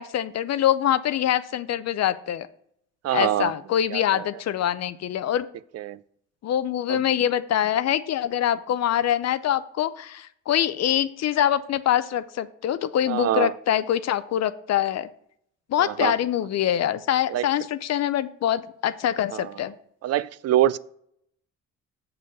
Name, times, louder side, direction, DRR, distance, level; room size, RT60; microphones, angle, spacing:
voice 1, 0.0-2.5 3.1-5.5 6.4-15.1 15.7-19.7, left 11 dB, 60° left, 13 dB, 0.6 m, -24 dB
voice 2, 3.0-3.5 3.9-4.2 5.7-6.0 6.9-7.0 13.1-13.5 15.8-16.1 17.3-17.4 19.3-19.4 20.0-20.8, right 13 dB, 55° right, 19 dB, 0.4 m, -24 dB
6.9 x 5.5 x 5.2 m, 0.68 s
cardioid pair, 90°, 30 cm